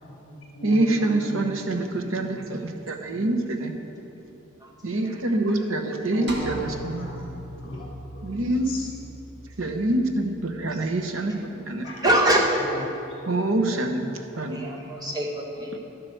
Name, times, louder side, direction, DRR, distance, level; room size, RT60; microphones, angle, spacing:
voice 1, 0.0-1.6 2.4-2.5 2.7-2.9 3.1-3.2 6.1-7.3 7.6-8.3 8.7-8.9 11.8-12.0 12.7-13.2 13.6-13.7 14.3-15.1, equal, 30° left, -4 dB, 3.0 m, -39 dB
voice 2, 0.6-3.7 4.8-7.1 8.2-8.8 9.6-11.4 11.7-11.9 13.3-14.6, right 2 dB, 75° right, 5 dB, 1.0 m, -25 dB
voice 3, 4.6-5.1 7.3-7.4 10.7-10.8 12.0-12.4 14.5-15.8, right 1 dB, 20° right, -2 dB, 1.6 m, -25 dB
sound 1, 6.3-10.7, right 1 dB, 55° right, 1.7 m, -40 dB
11.5 x 7.8 x 6.5 m, 2.8 s
head